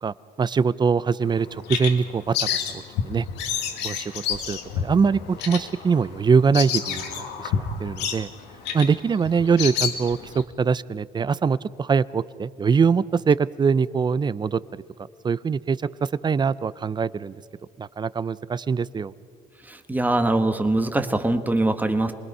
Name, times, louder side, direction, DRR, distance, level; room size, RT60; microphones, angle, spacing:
voice 1, 0.0-2.5 2.7-3.3 3.8-8.3 8.7-14.6 15.2-17.3 17.8-19.1, right 5 dB, 25° right, 18 dB, 0.5 m, -23 dB
Bird vocalization bird call bird song, 1.2-10.4, left 7 dB, 90° left, 1.9 m, -29 dB
voice 2, 19.6-22.1, right 2 dB, 10° right, 7 dB, 1.4 m, -22 dB
27.5 x 20.5 x 5.5 m, 2.1 s
cardioid pair, 110°, 17 cm